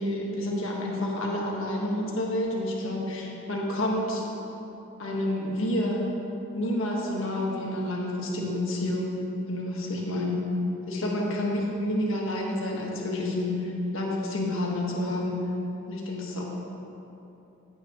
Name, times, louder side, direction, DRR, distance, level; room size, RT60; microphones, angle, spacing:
voice 1, 0.0-4.3 5.0-6.1 6.5-9.2 9.5-10.4 10.9-15.4 15.9-16.4, left 1 dB, 70° left, -2 dB, 1.7 m, -29 dB
14.0 x 9.0 x 3.2 m, 3.0 s
head